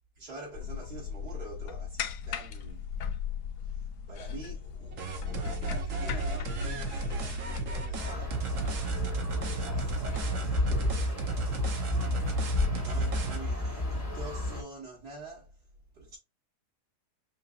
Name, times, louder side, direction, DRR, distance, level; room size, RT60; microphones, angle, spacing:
voice 1, 0.2-2.9 3.6-8.4 9.4-11.1 12.7-15.5 15.9-16.2, right 2 dB, 80° right, 3.1 m, -47 dB
sound 1, 0.5-10.2, left 7 dB, 75° left, 1.1 m, -38 dB
sound 2, 4.9-13.4, right 5 dB, 60° right, 1.2 m, -35 dB
sound 3, 8.0-14.6, left 2 dB, 20° left, 2.0 m, -31 dB
5.7 x 2.7 x 2.5 m
omnidirectional pair, 1.7 m